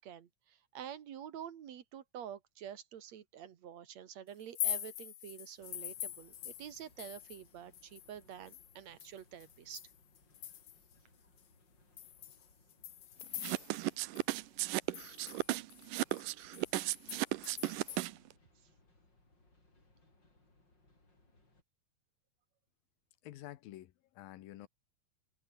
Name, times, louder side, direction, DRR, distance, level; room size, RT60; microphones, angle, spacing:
voice 1, 0.0-9.9, right 9 dB, 55° right, 2.6 m, -48 dB
sound 1, 4.4-7.5 7.7-10.9 11.4-11.5 12.0-13.9 14.2-14.3 14.6-18.0, left 11 dB, 60° left, 2.3 m, -43 dB
sound 2, 5.6-21.6, left 2 dB, 30° left, 7.6 m, -68 dB
sound 3, 13.4-18.3, right 17 dB, 75° right, 2.3 m, -35 dB
voice 2, 23.2-24.7, left 14 dB, 85° left, 2.9 m, -49 dB
omnidirectional pair, 4.0 m